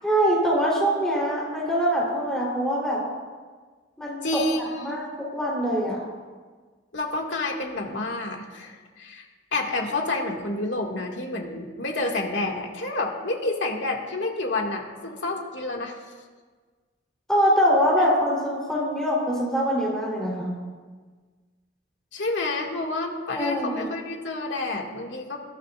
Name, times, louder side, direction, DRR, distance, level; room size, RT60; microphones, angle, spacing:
voice 1, 0.0-3.0 4.0-4.3 4.8-6.0 17.3-20.5 23.4-23.8, equal, 5° left, -5 dB, 3.5 m, -23 dB
voice 2, 4.2-5.0 6.9-9.3 9.5-16.0 22.1-25.4, left 2 dB, 80° left, 0 dB, 2.1 m, -29 dB
21.0 x 14.5 x 2.5 m, 1.4 s
head